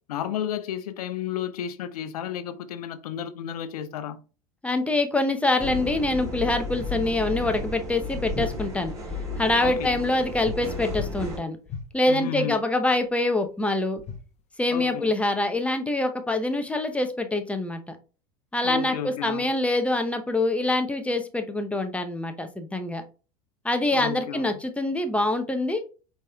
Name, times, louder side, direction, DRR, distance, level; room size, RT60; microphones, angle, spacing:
voice 1, 0.1-4.2 9.6-10.0 12.0-12.6 14.7-15.1 18.6-19.6 23.9-24.5, left 9 dB, 75° left, 0.6 m, -32 dB
voice 2, 4.6-8.9 9.4-11.6 11.9-14.0 14.6-18.0 18.5-23.0 23.6-25.8, left 2 dB, 5° left, 0.7 m, -25 dB
sound 1, 5.6-11.4, left 2 dB, 15° right, 2.5 m, -33 dB
sound 2, 10.4-10.7 10.9-11.2 11.7-11.9 14.0-14.2, left 6 dB, 35° left, 0.9 m, -37 dB
4.9 x 4.1 x 2.3 m
hypercardioid pair, 90°, 20 cm